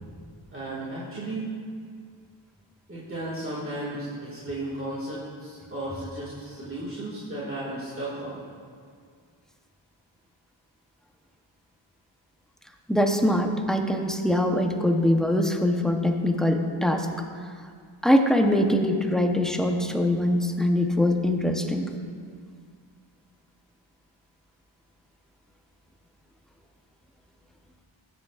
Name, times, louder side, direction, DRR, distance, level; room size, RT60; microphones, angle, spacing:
voice 1, 0.5-1.5 2.9-8.4, right 1 dB, 25° right, -8 dB, 2.0 m, -34 dB
voice 2, 12.9-17.1 18.0-21.9, left 1 dB, ahead, 3 dB, 0.8 m, -23 dB
15.5 x 8.1 x 2.5 m, 2.1 s
cardioid pair, 65°, 47 cm